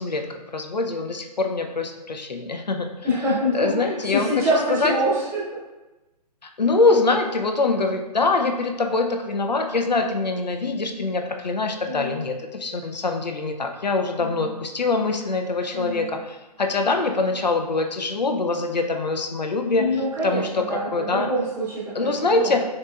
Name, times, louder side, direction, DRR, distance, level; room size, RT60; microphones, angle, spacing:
voice 1, 0.0-2.9 3.5-4.9 6.6-19.9 20.2-21.3 21.9-22.6, left 3 dB, 85° left, 5 dB, 0.6 m, -24 dB
voice 2, 3.0-5.4 11.9-12.2 14.2-14.5 15.7-16.1 19.7-22.6, equal, 10° right, -6 dB, 0.8 m, -25 dB
6.4 x 3.0 x 2.3 m, 1.1 s
figure-of-eight pair, 130°, 21 cm